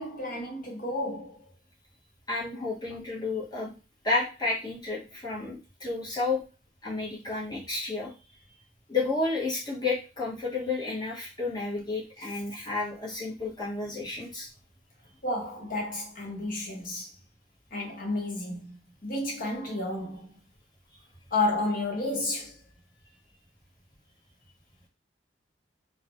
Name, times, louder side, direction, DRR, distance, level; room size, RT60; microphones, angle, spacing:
voice 1, 0.0-1.4 15.2-17.1 17.7-18.8 19.0-20.4 21.3-22.5, left 2 dB, 50° left, 1.0 m, -31 dB
voice 2, 2.3-3.7 4.0-6.4 6.8-8.1 8.9-14.5, left 3 dB, 25° left, 1.0 m, -31 dB
3.2 x 2.1 x 2.5 m
head